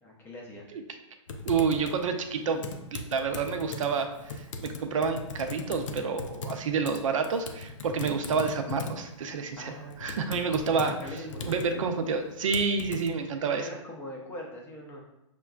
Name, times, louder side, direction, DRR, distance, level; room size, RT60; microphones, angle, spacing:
voice 1, 0.0-0.7 9.6-10.4 10.7-11.9 13.3-15.0, left 1 dB, 10° left, -1 dB, 0.4 m, -42 dB
Typing, 1.3-13.1, left 3 dB, 70° left, 0.5 m, -40 dB
voice 2, 1.4-2.6 2.9-9.7 10.0-10.9 11.4-13.6, right 5 dB, 75° right, 6 dB, 0.5 m, -29 dB
5.9 x 2.2 x 2.3 m, 0.85 s
hypercardioid pair, 155°, 17 cm